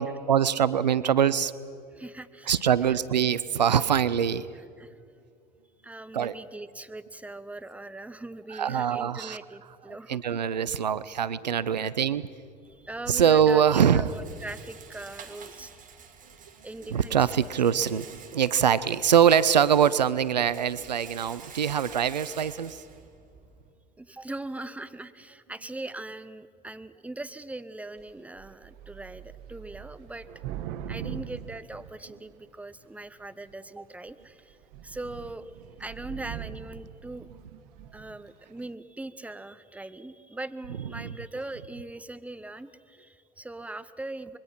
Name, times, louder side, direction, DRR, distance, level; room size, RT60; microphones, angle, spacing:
voice 1, 0.0-1.5 2.5-4.5 6.1-6.3 8.5-9.4 10.1-12.2 13.1-14.1 16.9-22.8 30.9-31.2 41.0-41.1, right 8 dB, 90° right, 18 dB, 0.6 m, -23 dB
voice 2, 1.9-3.0 4.8-4.9 5.8-10.2 11.6-11.9 12.7-13.6 13.9-15.8 16.6-17.5 24.0-30.3 30.9-34.6 34.8-35.5 35.8-37.3 37.9-44.4, right 2 dB, 5° right, 12 dB, 1.0 m, -40 dB
Rattle, 12.7-23.7, right 6 dB, 40° right, 2.3 m, -49 dB
Thunder / Rain, 28.0-28.1 28.4-32.5 33.2-33.7 34.1-34.2 34.5-38.3, right 10 dB, 65° right, 1.2 m, -42 dB
25.5 x 22.0 x 5.9 m, 2.3 s
figure-of-eight pair, 70°, 21 cm